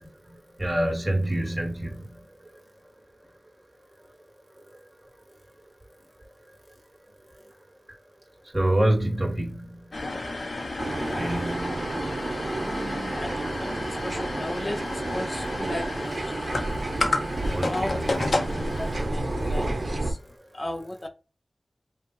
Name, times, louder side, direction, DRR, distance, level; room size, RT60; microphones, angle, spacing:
voice 1, 0.6-2.2 8.5-9.8 10.9-11.9 17.5-18.7, right 1 dB, 30° right, 2.2 m, -27 dB
sound 1, 9.9-20.3, left 2 dB, 75° left, 1.0 m, -33 dB
sound 2, 10.8-20.1, right 2 dB, 65° right, 0.9 m, -31 dB
Keyboard (musical), 11.2-17.2, right 4 dB, 45° right, 2.0 m, -45 dB
voice 2, 12.6-16.7 17.7-18.4 18.8-20.2 20.5-21.1, left 1 dB, 45° left, 0.7 m, -36 dB
5.6 x 2.5 x 3.2 m
cardioid pair, 40°, 0 cm